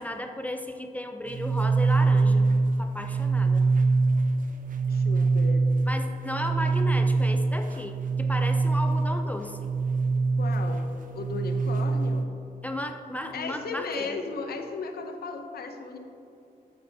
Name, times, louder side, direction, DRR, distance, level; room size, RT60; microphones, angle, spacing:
voice 1, 0.0-2.5 2.8-3.7 5.9-9.7 12.6-14.1, left 1 dB, 10° left, 5 dB, 0.5 m, -34 dB
sound 1, 1.3-12.2, right 3 dB, 55° right, 0.6 m, -24 dB
voice 2, 4.9-5.6 10.4-10.8 11.1-12.3 13.3-16.0, left 4 dB, 75° left, 6 dB, 0.7 m, -35 dB
8.6 x 6.7 x 2.7 m, 2.8 s
cardioid pair, 85°, 16 cm